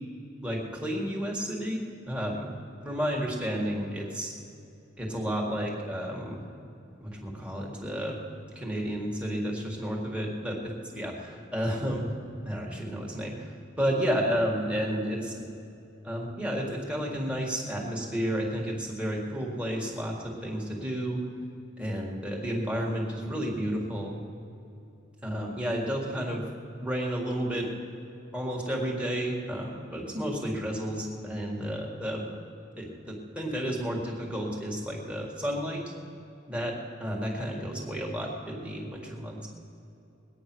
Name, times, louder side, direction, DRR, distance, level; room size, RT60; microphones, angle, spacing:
voice 1, 0.4-2.5 2.8-4.3 5.0-6.4 7.0-8.2 8.6-12.1 12.4-15.4 16.0-21.2 21.8-24.1 25.2-26.4 26.8-27.7 28.3-32.3 32.8-35.9 36.5-39.5, equal, 5° right, -2 dB, 1.9 m, -31 dB
21.0 x 9.1 x 6.2 m, 2.7 s
head